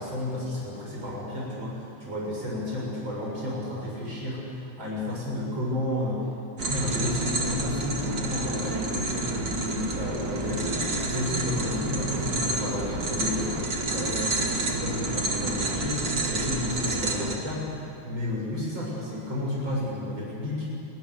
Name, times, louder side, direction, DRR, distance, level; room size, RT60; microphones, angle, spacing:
voice 1, 0.0-6.3 6.6-20.7, left 1 dB, 20° right, -4 dB, 7.7 m, -32 dB
sound 1, 6.6-17.4, right 2 dB, 60° right, 1.1 m, -29 dB
sound 2, 10.2-16.5, right 4 dB, 85° right, 5.6 m, -43 dB
29.5 x 22.0 x 7.3 m, 2.8 s
omnidirectional pair, 6.0 m